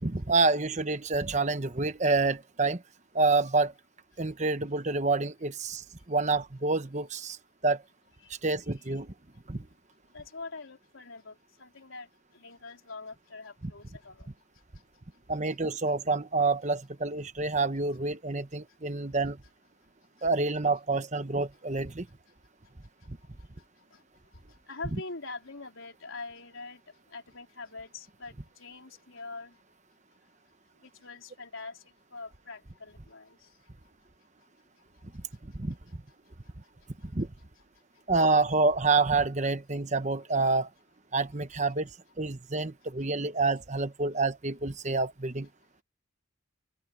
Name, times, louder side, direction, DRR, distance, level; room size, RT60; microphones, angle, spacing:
voice 1, 0.0-2.8 3.1-3.7 4.2-7.4 7.6-7.8 8.4-9.1 9.5-9.6 13.6-13.7 15.3-19.4 20.2-22.1 35.4-35.7 37.0-37.3 38.1-40.7 41.1-41.9 42.2-45.5, right 3 dB, 35° right, 1.1 m, -27 dB
voice 2, 10.1-12.1 12.3-14.3 23.9-24.0 24.5-26.8 27.1-29.6 30.8-31.8 32.1-33.5, left 3 dB, 85° left, 4.0 m, -44 dB
open air
head